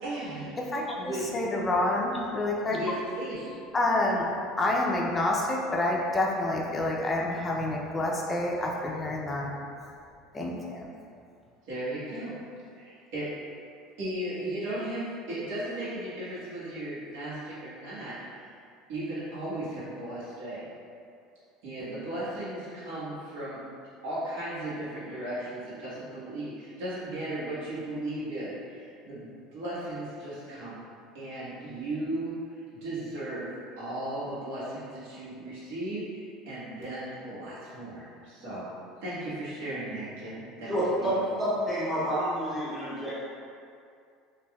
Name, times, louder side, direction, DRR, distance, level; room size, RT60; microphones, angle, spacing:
voice 1, 0.0-0.6 1.0-1.2 2.7-3.5 11.6-12.3 12.7-13.3 14.0-18.5 18.9-20.6 21.6-23.6 24.0-30.8 31.1-32.3 32.7-33.5 33.8-38.7 39.0-41.1, right 1 dB, 80° right, -11 dB, 1.1 m, -36 dB
voice 2, 1.3-2.8 3.7-4.3 4.6-9.5 10.3-10.9, left 2 dB, 20° left, -3 dB, 0.4 m, -28 dB
voice 3, 40.7-41.1 41.4-43.2, equal, 10° right, -12 dB, 1.5 m, -29 dB
3.3 x 2.4 x 2.2 m, 2.4 s
supercardioid pair, 125°, 0 cm